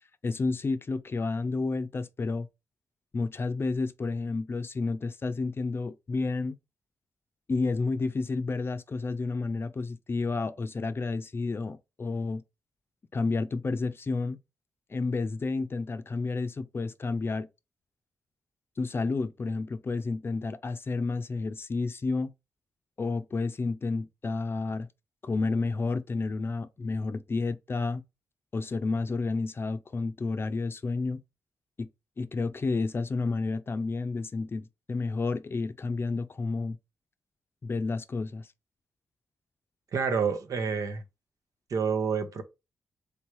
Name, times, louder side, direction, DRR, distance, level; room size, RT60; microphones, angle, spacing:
voice 1, 0.2-2.5 3.1-6.6 7.5-12.4 13.1-14.4 14.9-17.5 18.8-22.3 23.0-24.9 25.2-28.0 28.5-31.2 31.8-31.9 32.2-36.8 37.6-38.5, left 3 dB, 40° left, 0.5 m, -30 dB
voice 2, 39.9-41.0 41.7-42.4, right 6 dB, 70° right, 0.8 m, -28 dB
3.3 x 3.1 x 4.6 m
cardioid pair, 60°, 6 cm